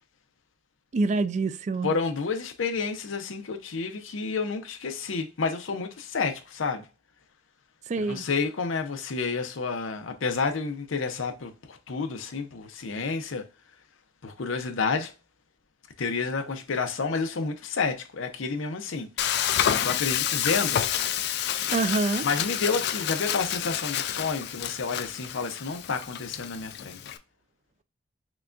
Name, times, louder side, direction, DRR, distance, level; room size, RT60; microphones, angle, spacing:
voice 1, 0.9-1.9 7.9-8.2 21.7-22.3, right 3 dB, 35° right, 0.3 m, -26 dB
voice 2, 1.8-6.9 8.0-13.4 14.2-15.1 16.0-19.1 19.8-20.9 22.2-27.2, left 4 dB, 85° left, 0.7 m, -30 dB
Frying (food), 19.2-27.2, left 10 dB, 55° left, 0.3 m, -29 dB
5.9 x 2.3 x 2.5 m
head